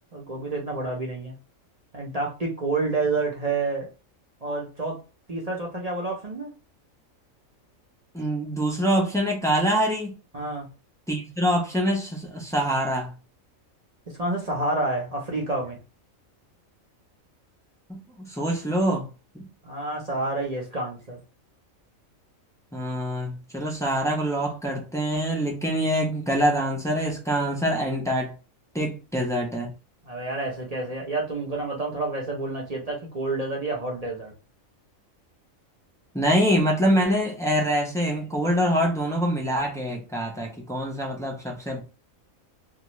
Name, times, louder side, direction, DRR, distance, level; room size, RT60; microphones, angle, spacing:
voice 1, 0.1-1.4 1.9-3.9 4.4-5.0 5.3-6.5 10.3-10.7 14.1-15.8 19.6-21.2 30.0-34.3, right 2 dB, 35° right, 0.7 m, -29 dB
voice 2, 8.1-10.2 11.1-13.1 17.9-19.5 22.7-28.3 28.7-29.7 36.1-41.8, equal, 5° left, 0.3 m, -25 dB
2.4 x 2.3 x 3.0 m
omnidirectional pair, 1.4 m